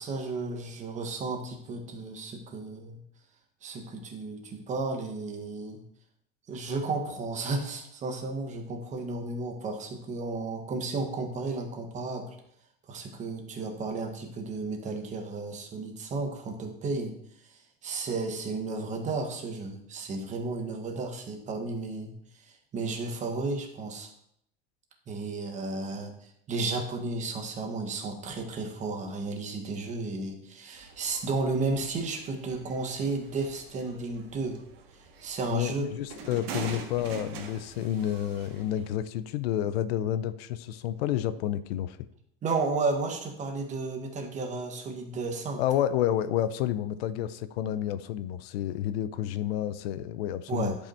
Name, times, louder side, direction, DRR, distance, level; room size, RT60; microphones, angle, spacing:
voice 1, 0.0-3.0 3.6-5.8 6.5-12.4 12.9-17.2 17.4-22.1 22.4-24.1 25.1-34.6 35.2-35.9 42.4-45.6 50.5-50.8, right 3 dB, 25° right, 4 dB, 1.2 m, -33 dB
sound 1, 30.7-38.9, right 5 dB, 75° right, 1.9 m, -44 dB
voice 2, 35.5-42.1 45.6-50.8, left 11 dB, 75° left, 14 dB, 0.6 m, -30 dB
10.5 x 5.5 x 4.3 m, 0.71 s
supercardioid pair, 160°, 31 cm